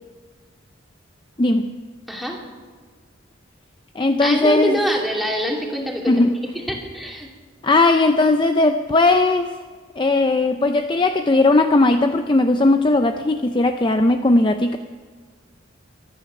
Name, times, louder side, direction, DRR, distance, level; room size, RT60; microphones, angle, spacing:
voice 1, 1.4-1.7 4.0-4.8 6.1-6.4 7.6-9.5 10.0-14.8, left 2 dB, 25° left, 7 dB, 0.5 m, -17 dB
voice 2, 2.1-2.4 4.2-6.2 6.5-7.3, equal, ahead, -1 dB, 2.6 m, -25 dB
24.5 x 9.2 x 6.0 m, 1.5 s
head